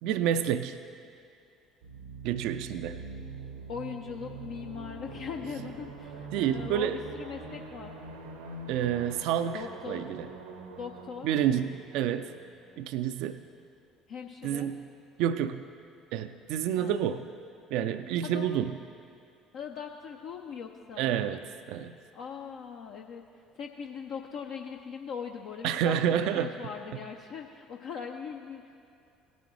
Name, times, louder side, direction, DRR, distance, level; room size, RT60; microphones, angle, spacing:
voice 1, 0.0-0.8 2.2-3.0 6.3-7.0 8.7-10.3 11.2-12.3 12.8-13.4 14.4-14.9 15.2-15.7 16.1-17.3 17.7-18.7 21.0-21.4 21.7-21.9 25.6-26.5, right 9 dB, 65° right, 10 dB, 0.3 m, -29 dB
sound 1, 1.8-13.4, right 3 dB, 80° right, 0.7 m, -44 dB
voice 2, 3.7-7.9 9.5-10.1 10.8-11.3 14.1-14.7 16.8-17.1 18.2-18.5 19.5-21.1 22.1-28.8, left 6 dB, 60° left, 2 dB, 0.5 m, -40 dB
17.5 x 9.5 x 3.1 m, 2.4 s
figure-of-eight pair, 60°, 0 cm